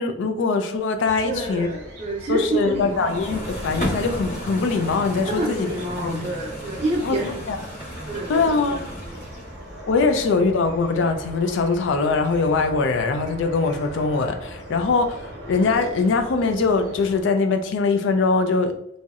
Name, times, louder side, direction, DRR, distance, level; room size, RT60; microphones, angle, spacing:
voice 1, 0.0-1.7 2.3-5.7 6.0-6.3 7.0-7.2 7.5-7.6 8.3-8.8 9.9-18.8, left 4 dB, 70° left, 7 dB, 0.3 m, -22 dB
sound 1, 1.0-17.2, equal, 65° right, 0.7 m, -40 dB
voice 2, 1.2-3.5 5.2-7.4 8.1-9.2, right 1 dB, 30° right, -1 dB, 0.5 m, -28 dB
sound 2, 2.7-9.7, equal, 40° left, 0.7 m, -34 dB
2.7 x 2.0 x 2.3 m, 0.72 s
head